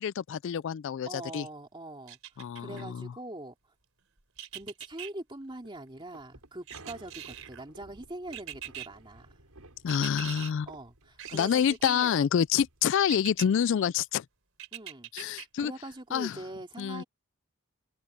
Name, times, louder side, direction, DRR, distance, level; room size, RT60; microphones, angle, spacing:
voice 1, 0.0-1.1 1.3-1.4 2.4-3.1 9.8-10.7 11.3-14.2 15.1-15.7 16.1-16.4 16.8-17.0, left 8 dB, 55° left, 0.3 m, -27 dB
voice 2, 1.1-3.5 4.5-9.3 10.7-12.2 14.7-17.0, right 1 dB, 20° right, 2.6 m, -43 dB
sound 1, 2.1-2.8 4.4-5.1 6.7-7.6 8.3-8.9 9.9-10.5 11.2-12.1 13.1-13.5 14.6-15.4 15.9-16.0, right 11 dB, 65° right, 4.3 m, -42 dB
sound 2, 5.5-13.6, right 2 dB, 85° right, 5.9 m, -55 dB
head